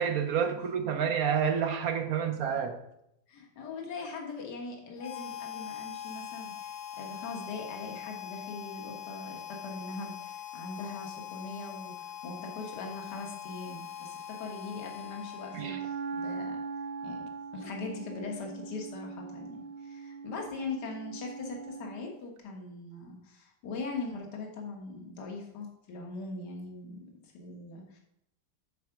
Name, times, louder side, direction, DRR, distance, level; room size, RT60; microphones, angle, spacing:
voice 1, 0.0-2.8 15.5-15.8, right 7 dB, 60° right, 7 dB, 1.0 m, -29 dB
voice 2, 3.3-6.7 7.0-16.6 17.0-17.2 17.5-28.0, left 3 dB, 70° left, 1 dB, 1.9 m, -41 dB
Harmonica, 5.0-16.0, left 10 dB, 85° left, 1.4 m, -42 dB
Wind instrument woodwind instrument, 15.5-22.2, right 5 dB, 85° right, 1.3 m, -40 dB
8.2 x 4.8 x 5.8 m, 0.79 s
omnidirectional pair, 1.9 m